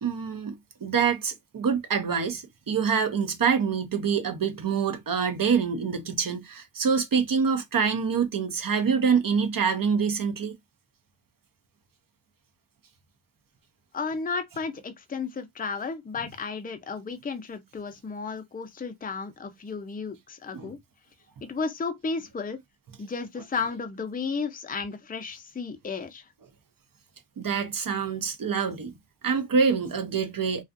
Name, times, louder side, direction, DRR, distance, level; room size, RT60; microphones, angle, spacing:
voice 1, 0.0-0.6 0.8-10.6 20.5-20.7 27.4-29.0 29.2-30.6, right 6 dB, 45° right, 0.6 m, -26 dB
voice 2, 13.9-20.8 21.5-22.6 23.0-26.3, left 4 dB, 20° left, 0.5 m, -33 dB
2.4 x 2.4 x 2.4 m
cardioid pair, 65°, 48 cm